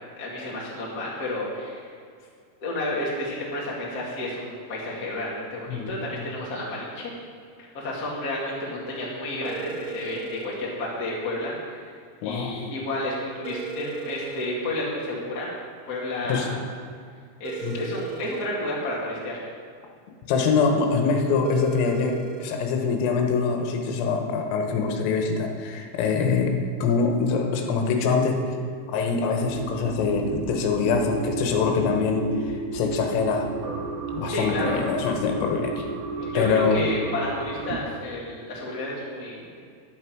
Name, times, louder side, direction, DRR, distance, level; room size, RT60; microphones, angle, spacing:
voice 1, 0.2-1.9 2.6-7.1 7.6-11.9 12.2-15.5 15.9-16.5 17.4-19.4 34.3-34.8 36.2-39.6, left 1 dB, 35° left, -5 dB, 1.5 m, -31 dB
voice 2, 5.7-6.3 12.2-12.6 16.3-16.5 17.6-17.8 20.3-26.6 26.8-28.6 28.9-33.5 34.1-35.9 36.4-36.9, left 5 dB, 90° left, 3 dB, 3.8 m, -24 dB
sound 1, 9.5-10.5 13.5-14.5 17.5-18.5 21.5-22.5, right 7 dB, 90° right, 3.5 m, -37 dB
sound 2, 29.4-37.8, right 5 dB, 70° right, 2.8 m, -33 dB
11.5 x 9.9 x 4.6 m, 2.1 s
omnidirectional pair, 5.7 m